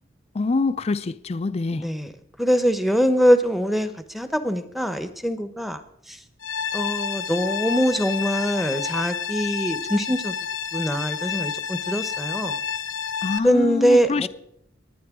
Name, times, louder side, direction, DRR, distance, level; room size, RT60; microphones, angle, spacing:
voice 1, 0.3-1.8 13.2-14.3, left 3 dB, 30° left, 0.4 m, -25 dB
voice 2, 1.7-2.1 2.4-5.8 6.1-6.2 6.7-10.3 10.7-12.6 13.4-14.3, equal, ahead, 0.8 m, -23 dB
sound 1, 6.4-13.4, left 7 dB, 85° left, 0.6 m, -29 dB
20.0 x 9.5 x 3.6 m
head